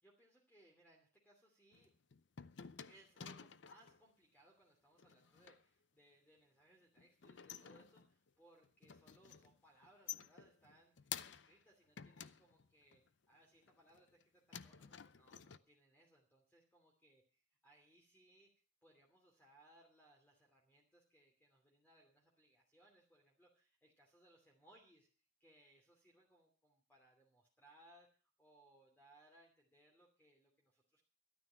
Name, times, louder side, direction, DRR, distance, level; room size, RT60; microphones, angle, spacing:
voice 1, 0.0-1.9 2.8-13.0 13.3-18.5 18.8-25.1 25.4-31.0, right 1 dB, 10° left, -1 dB, 2.8 m, -68 dB
sound 1, 1.7-4.0 5.0-5.6 7.0-8.3 8.6-9.6 9.8-11.6 12.0-13.1 13.6-14.2 14.5-15.6, left 9 dB, 65° left, 0.6 m, -52 dB
13.0 x 12.0 x 5.7 m, 0.36 s
head